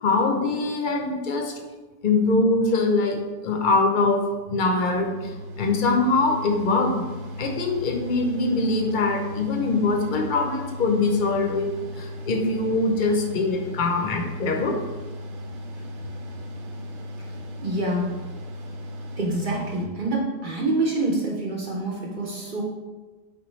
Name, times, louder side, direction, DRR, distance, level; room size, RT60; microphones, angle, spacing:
voice 1, 0.0-1.6 2.0-4.2 4.5-7.0 7.4-14.8, left 3 dB, 55° left, 3 dB, 0.6 m, -23 dB
Mechanical fan, 4.5-19.9, equal, 90° right, 1.0 m, -37 dB
voice 2, 17.6-18.2 19.2-22.6, right 2 dB, 55° right, -2 dB, 0.7 m, -26 dB
4.5 x 3.3 x 3.0 m, 1.2 s
omnidirectional pair, 1.1 m